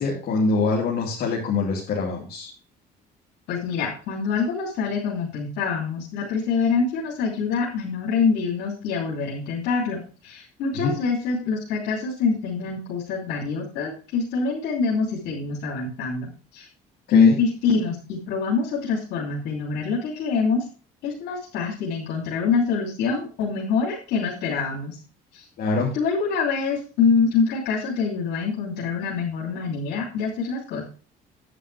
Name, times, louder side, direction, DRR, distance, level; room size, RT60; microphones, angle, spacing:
voice 1, 0.0-2.5 10.7-10.9 17.1-17.4 25.6-25.9, left 3 dB, 60° left, -3 dB, 2.9 m, -24 dB
voice 2, 3.5-16.7 17.1-20.6 21.0-25.0 25.3-25.4 25.9-30.9, left 5 dB, 85° left, -4 dB, 3.0 m, -25 dB
9.9 x 9.6 x 3.4 m, 0.37 s
cardioid pair, 110°, 17 cm